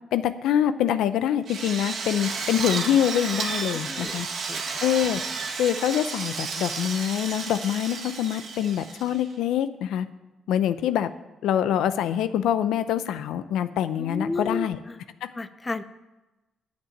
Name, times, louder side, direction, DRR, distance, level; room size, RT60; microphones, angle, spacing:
voice 1, 0.1-4.3 4.8-5.2 5.6-10.1 10.5-11.1 11.4-14.8 15.2-15.3, left 10 dB, 85° left, 12 dB, 0.6 m, -25 dB
Drill, 1.5-9.3, right 4 dB, 65° right, 1.8 m, -32 dB
voice 2, 3.7-4.2 4.5-4.6 14.0-15.0 15.3-15.8, left 3 dB, 20° left, 13 dB, 0.6 m, -32 dB
8.9 x 7.4 x 8.5 m, 1.0 s
cardioid pair, 90°, 0 cm